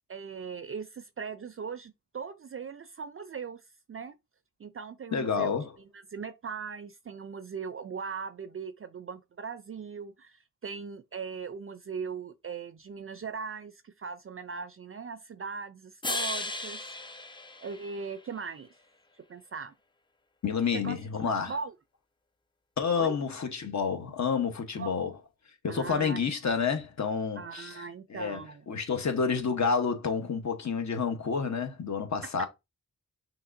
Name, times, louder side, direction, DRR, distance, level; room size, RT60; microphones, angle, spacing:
voice 1, 0.1-3.6 3.9-4.2 4.6-5.6 5.9-16.8 17.6-18.7 19.3-19.7 20.7-21.0 21.5-21.7 22.9-23.2 24.7-25.0 25.7-26.3 27.4-28.7 32.4-32.5, right 5 dB, 45° right, 0.4 m, -39 dB
voice 2, 5.1-5.7 20.4-21.5 22.8-25.1 25.6-28.4 28.7-32.5, left 5 dB, 60° left, 1.0 m, -29 dB
sound 1, 16.0-18.4, left 2 dB, 15° left, 0.5 m, -36 dB
5.8 x 3.0 x 2.5 m
cardioid pair, 70°, 32 cm